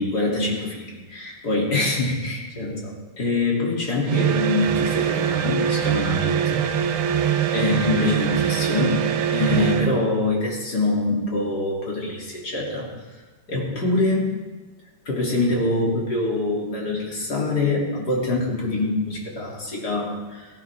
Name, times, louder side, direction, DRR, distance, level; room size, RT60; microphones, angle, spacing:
voice 1, 0.0-6.6 7.1-7.2 7.5-9.0 9.3-12.9 13.5-14.3 15.1-20.5, left 2 dB, 50° left, -3 dB, 3.6 m, -24 dB
sound 1, 4.1-10.0, right 9 dB, 80° right, 1.6 m, -23 dB
17.5 x 14.0 x 3.6 m, 1.3 s
omnidirectional pair, 2.3 m